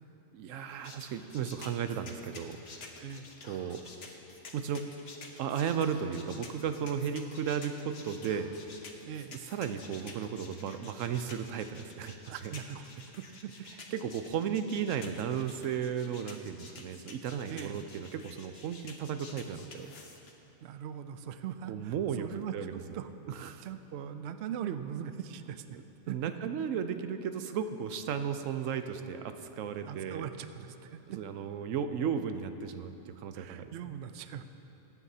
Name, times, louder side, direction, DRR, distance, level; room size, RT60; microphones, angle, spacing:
voice 1, 0.3-2.6 3.4-3.8 4.5-4.9 5.4-8.5 9.3-12.5 13.9-19.9 21.7-22.7 23.3-23.7 25.7-30.3 31.1-33.9, right 7 dB, 90° right, 9 dB, 1.0 m, -35 dB
sound 1, 0.8-20.3, left 4 dB, 55° left, 1.2 m, -50 dB
voice 2, 2.7-3.2 9.0-9.3 12.2-12.9 13.2-13.5 17.5-17.8 20.6-23.1 23.6-25.6 26.1-26.5 29.8-31.2 33.3-34.4, right 9 dB, 65° right, 10 dB, 0.8 m, -41 dB
21.0 x 9.9 x 2.8 m, 2.9 s
omnidirectional pair, 1.3 m